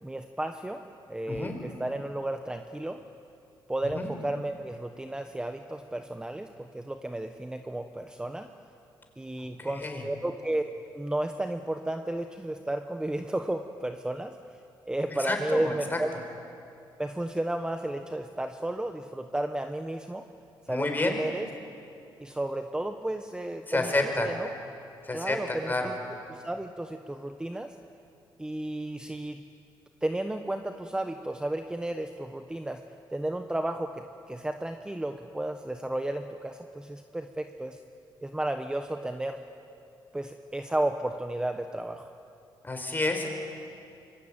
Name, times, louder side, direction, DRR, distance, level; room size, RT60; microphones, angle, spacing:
voice 1, 0.0-3.0 3.7-8.5 9.2-10.6 10.9-14.4 14.9-16.2 17.0-20.2 20.7-21.5 22.2-23.9 24.2-24.5 25.1-26.0 26.3-27.7 28.4-29.4 30.0-32.8 33.1-37.8 38.2-39.4 40.1-42.1, right 1 dB, 10° right, 6 dB, 1.2 m, -33 dB
voice 2, 1.3-1.6 3.9-4.1 9.6-10.0 15.2-15.7 20.7-21.2 23.7-24.3 25.0-25.9 42.6-43.3, left 2 dB, 20° left, 4 dB, 5.1 m, -29 dB
25.5 x 23.0 x 9.1 m, 2.6 s
cardioid pair, 95°, 9 cm